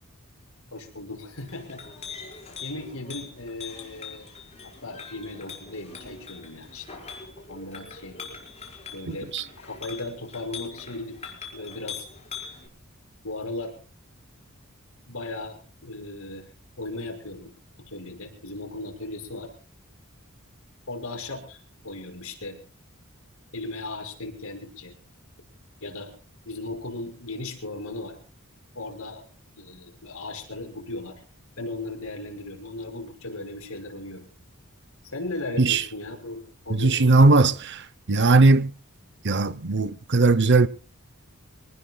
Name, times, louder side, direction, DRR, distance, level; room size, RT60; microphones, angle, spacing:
voice 1, 0.7-2.2 2.6-4.3 4.6-7.0 7.5-8.2 8.9-9.3 9.6-12.1 13.2-13.8 15.1-16.5 16.8-17.5 17.9-19.5 20.9-22.6 23.5-24.9 25.8-26.1 26.5-28.2 28.7-29.2 29.6-31.2 31.6-34.3 35.0-37.5, left 2 dB, 70° left, 5.9 m, -37 dB
Chink clink, 1.3-12.7, left 5 dB, 30° left, 5.1 m, -42 dB
voice 2, 9.1-9.4 35.6-35.8 36.7-38.7 39.2-40.7, right 3 dB, 50° right, 0.8 m, -19 dB
25.5 x 19.5 x 2.3 m
head